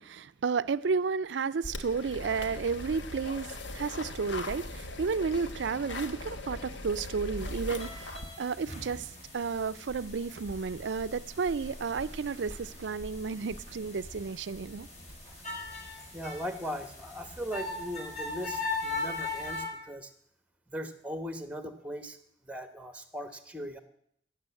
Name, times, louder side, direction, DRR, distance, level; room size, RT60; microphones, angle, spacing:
voice 1, 0.0-9.1 9.3-14.9, right 5 dB, 70° right, 0.5 m, -32 dB
sound 1, 1.6-8.3, left 2 dB, 75° left, 1.2 m, -40 dB
sound 2, 7.4-19.6, left 2 dB, 40° left, 4.5 m, -40 dB
voice 2, 16.1-20.1 20.7-22.2 22.4-23.8, equal, 5° right, 1.1 m, -39 dB
16.0 x 6.8 x 8.3 m
head